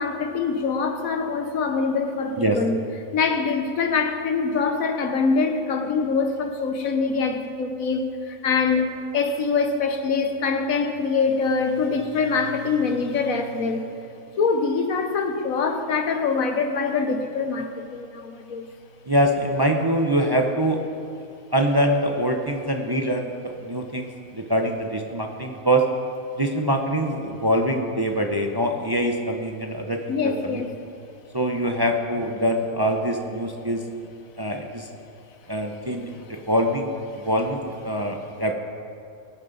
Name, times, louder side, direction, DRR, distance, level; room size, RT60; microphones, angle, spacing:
voice 1, 0.0-2.8 3.1-13.9 14.4-18.7 30.1-30.7, left 4 dB, 90° left, 6 dB, 1.5 m, -24 dB
voice 2, 19.1-20.8 21.5-25.9 26.4-30.6 31.3-33.8 34.4-34.9 35.5-38.5, equal, 25° right, 2 dB, 0.6 m, -24 dB
20.5 x 9.3 x 4.0 m, 2.5 s
omnidirectional pair, 1.4 m